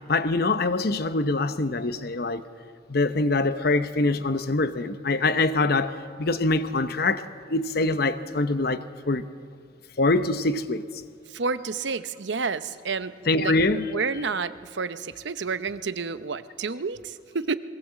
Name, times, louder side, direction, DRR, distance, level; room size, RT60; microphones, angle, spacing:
voice 1, 0.1-2.4 2.9-9.3 10.0-10.9 13.3-13.9, left 2 dB, 55° left, 0.8 m, -24 dB
voice 2, 11.3-13.1 13.4-13.6 13.9-17.5, right 4 dB, 70° right, 0.7 m, -30 dB
21.5 x 18.5 x 7.5 m
head